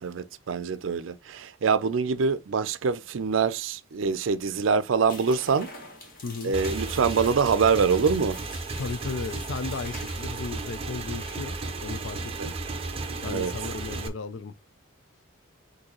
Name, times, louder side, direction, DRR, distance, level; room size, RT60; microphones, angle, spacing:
voice 1, 0.0-5.7 6.4-8.4 12.4-12.5 13.2-13.5, right 5 dB, 75° right, 0.5 m, -25 dB
sound 1, 5.1-10.3, left 2 dB, 45° left, 1.6 m, -46 dB
voice 2, 6.2-6.6 8.8-11.6 11.8-12.5 13.2-14.5, left 4 dB, 70° left, 0.4 m, -35 dB
Motorcycle / Engine, 6.5-14.1, right 3 dB, 30° right, 0.8 m, -34 dB
6.3 x 2.7 x 3.0 m
head